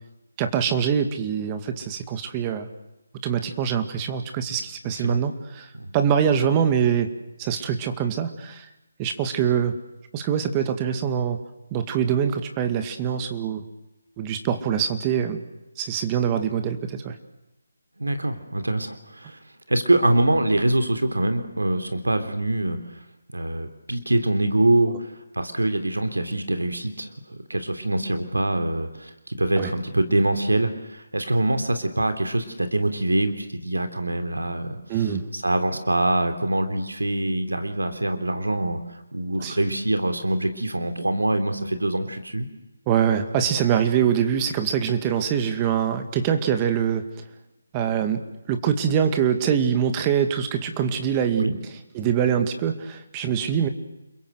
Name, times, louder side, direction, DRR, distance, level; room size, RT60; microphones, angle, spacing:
voice 1, 0.4-2.7 3.2-5.7 5.9-7.1 7.4-8.7 9.0-9.7 10.1-11.4 11.7-13.6 14.2-15.4 15.8-17.2 29.6-29.7 34.9-35.3 39.4-39.6 42.9-47.0 47.7-48.2 48.5-51.5 51.9-53.7, right 8 dB, 20° right, 7 dB, 2.3 m, -24 dB
voice 2, 4.8-5.2 5.7-5.9 18.0-19.4 19.7-22.8 23.3-25.1 25.3-34.8 35.3-38.8 39.1-42.5 51.4-51.5, right 1 dB, 90° right, 8 dB, 3.3 m, -24 dB
29.5 x 22.5 x 8.1 m, 0.95 s
figure-of-eight pair, 155°, 0 cm